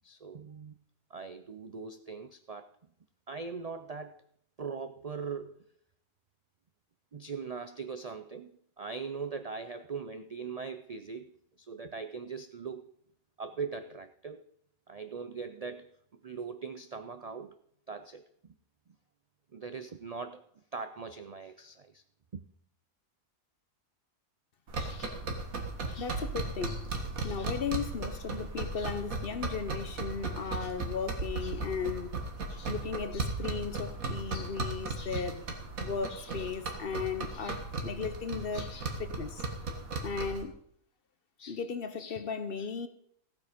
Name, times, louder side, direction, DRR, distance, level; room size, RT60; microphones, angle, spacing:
voice 1, 0.0-0.8 1.1-2.7 3.3-4.2 4.6-5.6 7.1-11.3 11.6-12.9 13.4-14.5 14.9-17.6 17.9-18.5 19.5-20.4 20.7-22.0 22.3-22.4, right 5 dB, 65° right, 0.3 m, -40 dB
sound 1, 24.7-40.4, right 3 dB, 85° right, 2.2 m, -36 dB
voice 2, 24.8-25.2 25.9-26.9 27.2-32.1 32.5-35.4 35.8-39.4 40.0-40.6 41.4-42.9, left 6 dB, 50° left, 0.9 m, -36 dB
15.0 x 8.6 x 5.1 m
omnidirectional pair, 1.4 m